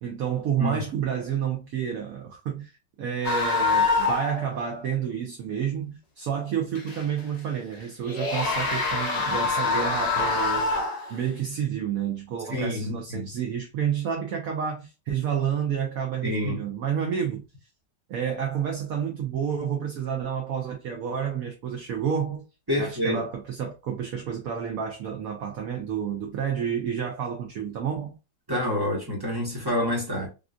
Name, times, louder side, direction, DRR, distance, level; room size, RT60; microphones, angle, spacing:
voice 1, 0.0-2.7 3.0-10.7 11.1-17.4 18.1-22.4 22.8-28.2, right 8 dB, 65° right, 0.9 m, -30 dB
sound 1, 3.2-4.4 4.7-4.8 6.8-7.2 8.0-11.4, left 4 dB, 80° left, 0.3 m, -25 dB
voice 2, 12.5-13.3 16.2-16.6 22.7-23.2 28.5-30.3, left 1 dB, 15° right, 1.0 m, -27 dB
3.6 x 2.4 x 2.4 m
omnidirectional pair, 1.9 m